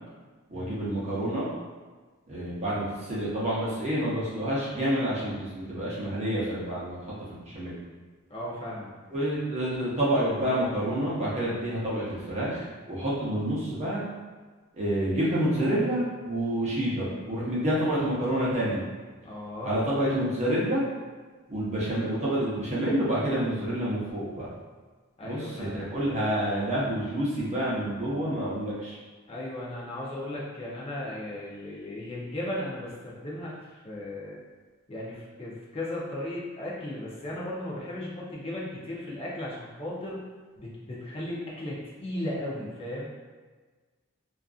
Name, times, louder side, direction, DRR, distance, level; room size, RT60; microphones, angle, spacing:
voice 1, 0.5-1.5 2.3-7.0 7.3-7.8 9.1-14.0 14.7-18.8 19.6-20.8 21.5-24.5 25.2-28.9, right 1 dB, 30° right, -8 dB, 0.7 m, -28 dB
voice 2, 8.3-9.0 13.3-13.4 19.2-19.7 25.2-25.9 29.3-33.5 33.8-34.4 34.9-40.2 40.6-43.0, left 1 dB, 25° left, -6 dB, 0.5 m, -36 dB
2.5 x 2.4 x 2.4 m, 1.4 s
head